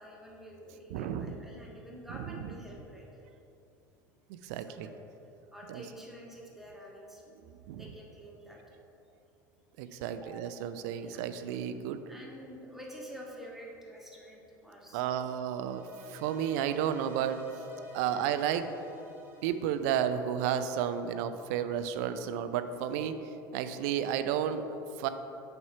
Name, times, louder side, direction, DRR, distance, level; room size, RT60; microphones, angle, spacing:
voice 1, 0.0-3.2 4.7-5.0 5.5-7.2 7.8-8.6 10.1-10.3 11.0-11.2 12.1-15.3, equal, 5° right, -3 dB, 1.6 m, -48 dB
voice 2, 0.9-1.4 4.3-4.9 5.7-5.8 7.5-7.8 9.8-12.0 14.9-17.4 17.9-18.7 19.4-23.2 23.5-25.1, right 9 dB, 55° right, 10 dB, 0.4 m, -32 dB
sound 1, 15.6-20.9, right 1 dB, 20° right, 1.6 m, -51 dB
6.7 x 4.3 x 5.7 m, 2.8 s
figure-of-eight pair, 75°, 11 cm